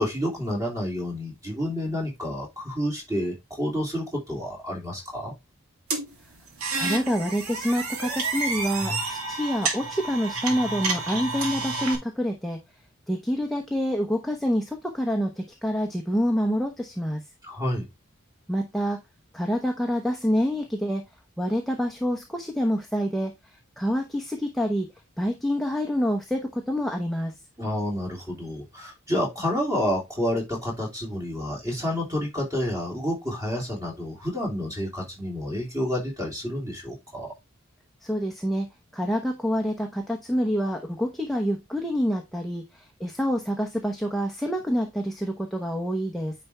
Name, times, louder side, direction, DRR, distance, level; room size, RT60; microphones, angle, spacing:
voice 1, 0.0-5.3 17.4-17.9 27.6-37.3, equal, 15° right, 0 dB, 3.0 m, -29 dB
sound 1, 5.9-12.0, right 3 dB, 80° right, 2.5 m, -30 dB
voice 2, 6.7-12.6 13.1-17.2 18.5-19.0 19.3-21.0 21.4-27.3 38.0-38.7 38.9-46.3, equal, ahead, 2 dB, 0.8 m, -27 dB
9.5 x 4.2 x 3.4 m, 0.21 s
head